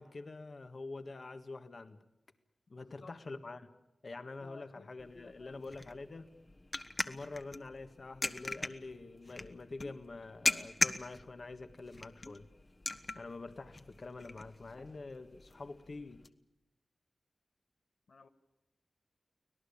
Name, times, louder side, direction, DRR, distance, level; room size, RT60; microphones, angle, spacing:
voice 1, 0.0-2.0 2.7-3.7 4.0-6.3 7.0-12.5 13.1-16.2, left 3 dB, 60° left, 9 dB, 1.6 m, -46 dB
voice 2, 2.7-3.2 4.1-5.6 18.1-18.3, left 3 dB, 80° left, 5 dB, 1.5 m, -57 dB
sound 1, 5.0-16.3, left 2 dB, 40° left, 1.4 m, -40 dB
25.0 x 18.0 x 8.7 m, 0.87 s
cardioid pair, 60°, 0 cm